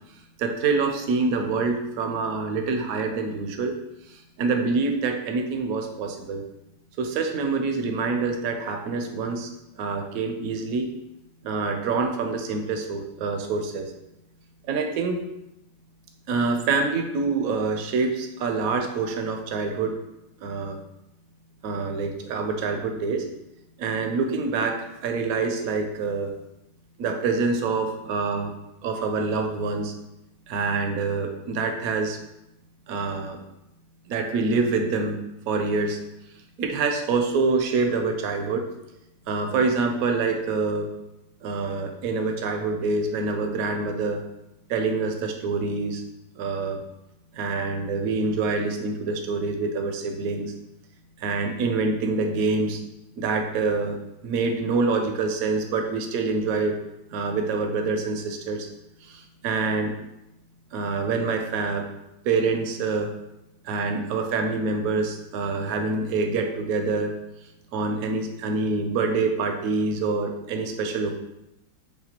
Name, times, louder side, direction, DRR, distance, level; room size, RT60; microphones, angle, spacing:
voice 1, 0.4-3.8 4.1-6.4 7.0-9.5 9.7-10.9 11.4-13.9 14.7-15.2 16.3-20.0 20.4-20.8 21.6-23.3 23.8-26.3 27.0-28.5 28.8-29.9 30.5-32.2 32.9-33.4 34.1-35.2 35.5-36.0 36.6-38.7 39.3-40.9 41.4-44.2 44.7-46.0 46.3-46.8 47.3-50.5 51.2-52.8 53.2-54.0 54.2-56.8 57.1-58.7 59.0-59.9 60.7-61.9 62.2-63.1 63.6-67.2 67.7-71.1, right 4 dB, 70° right, 4 dB, 0.9 m, -26 dB
6.6 x 2.3 x 2.9 m, 0.89 s
omnidirectional pair, 1.9 m